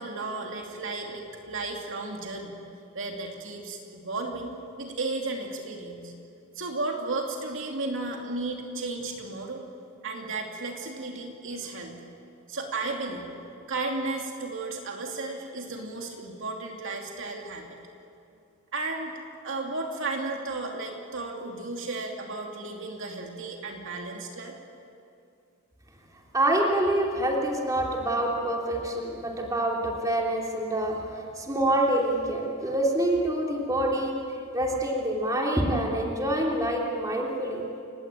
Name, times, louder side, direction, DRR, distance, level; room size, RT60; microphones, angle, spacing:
voice 1, 0.0-2.5 2.9-6.1 6.6-9.6 10.0-12.1 12.5-13.3 13.7-17.7 18.7-24.5, right 3 dB, 60° right, 1 dB, 2.7 m, -34 dB
voice 2, 26.3-31.1 31.4-34.2 34.5-37.6, right 1 dB, 15° right, -1 dB, 3.1 m, -26 dB
29.5 x 17.0 x 9.1 m, 2.5 s
head